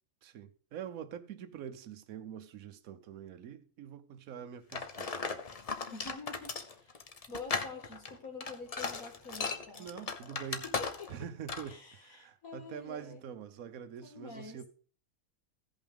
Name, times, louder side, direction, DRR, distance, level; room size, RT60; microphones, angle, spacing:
voice 1, 0.2-5.4 9.8-10.6 11.1-14.7, right 8 dB, 70° right, 1.1 m, -45 dB
sound 1, 4.7-11.2 11.5-11.7, left 4 dB, 45° left, 0.5 m, -37 dB
voice 2, 5.9-9.9 10.6-11.2 11.7-13.2 14.0-14.6, left 3 dB, 70° left, 2.2 m, -47 dB
16.0 x 5.5 x 3.5 m
omnidirectional pair, 1.6 m